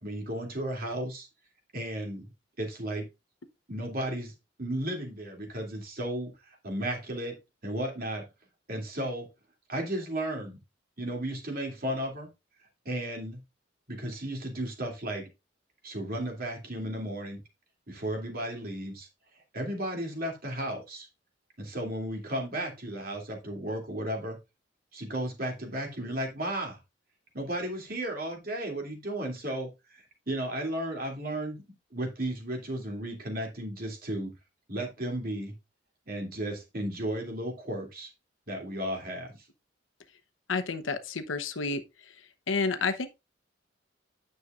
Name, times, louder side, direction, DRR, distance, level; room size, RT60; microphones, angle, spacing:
voice 1, 0.0-1.3 1.7-2.2 2.6-3.1 3.7-4.3 4.6-7.3 7.6-8.2 8.7-9.3 9.7-10.6 11.0-12.3 12.8-13.4 13.9-15.2 15.8-17.4 17.9-19.1 19.5-21.1 21.6-24.4 24.9-26.8 27.3-31.6 31.9-34.3 34.7-35.5 36.1-38.1 38.5-39.4, right 1 dB, 50° right, 2.8 m, -34 dB
voice 2, 40.5-41.8 42.5-43.1, left 4 dB, 85° left, 0.9 m, -29 dB
9.7 x 6.8 x 2.5 m
head